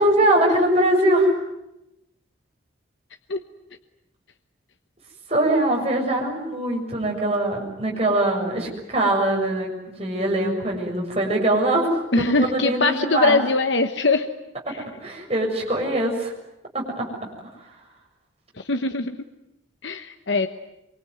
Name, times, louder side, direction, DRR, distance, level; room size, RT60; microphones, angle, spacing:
voice 1, 0.0-1.3 5.3-13.4 15.0-16.3 16.7-17.1, right 1 dB, 30° right, 0 dB, 6.8 m, -22 dB
voice 2, 12.1-14.3 14.7-14.8 18.6-19.2 19.8-20.5, left 3 dB, 65° left, 8 dB, 1.2 m, -22 dB
24.5 x 24.5 x 9.4 m, 0.87 s
head